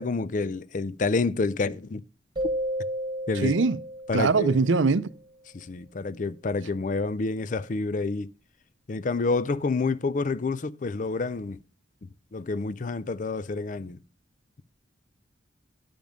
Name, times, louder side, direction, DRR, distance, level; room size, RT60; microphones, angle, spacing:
voice 1, 0.0-2.0 3.3-3.5 4.1-4.6 5.5-8.3 8.9-11.6 12.3-14.0, left 3 dB, 45° left, 0.4 m, -28 dB
sound 1, 2.4-5.0, equal, 25° right, 1.3 m, -33 dB
voice 2, 3.4-3.8 4.1-5.1, right 4 dB, 90° right, 0.6 m, -22 dB
10.5 x 5.2 x 5.1 m
head